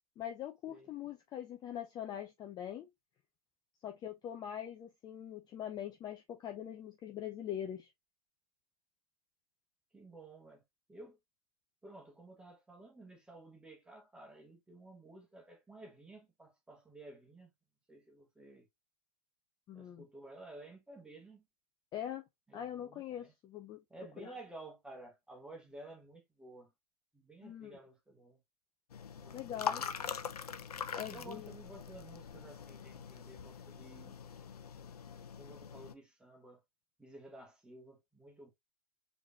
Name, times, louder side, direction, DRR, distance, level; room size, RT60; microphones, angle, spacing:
voice 1, 0.2-2.9 3.8-7.9 19.7-20.0 21.9-22.2 22.5-23.8 27.4-27.8 29.3-29.8 30.9-31.5, left 10 dB, 20° left, 0.6 m, -42 dB
voice 2, 9.9-10.6 10.9-11.2 11.8-17.5 17.9-18.7 19.7-21.5 22.5-23.3 23.9-26.7 27.1-28.4 29.2-29.9 31.0-34.2 35.3-36.6 37.0-38.5, right 2 dB, 5° right, 1.4 m, -53 dB
sound 1, 28.9-35.9, left 7 dB, 75° left, 0.6 m, -43 dB
5.0 x 3.3 x 2.5 m
hypercardioid pair, 115°, 20 cm